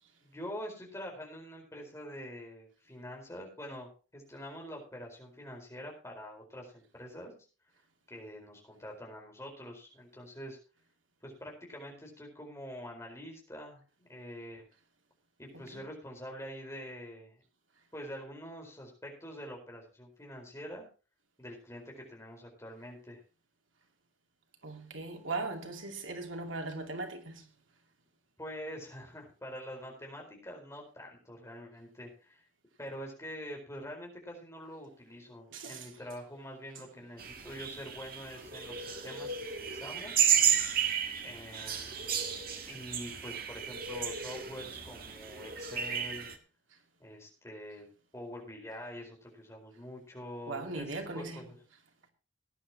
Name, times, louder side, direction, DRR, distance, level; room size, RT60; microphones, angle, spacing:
voice 1, 0.2-7.3 8.1-10.6 11.2-14.7 15.4-17.4 17.9-20.9 21.4-23.2 28.4-32.4 32.8-40.2 41.2-42.0 42.6-46.3 47.0-47.9 48.1-51.6, equal, 15° left, 4.5 m, -45 dB
voice 2, 24.6-27.5 35.5-35.9 50.5-51.4, right 3 dB, 90° right, 2.7 m, -38 dB
sound 1, 37.2-46.4, right 8 dB, 50° right, 1.7 m, -33 dB
18.0 x 10.5 x 2.9 m
head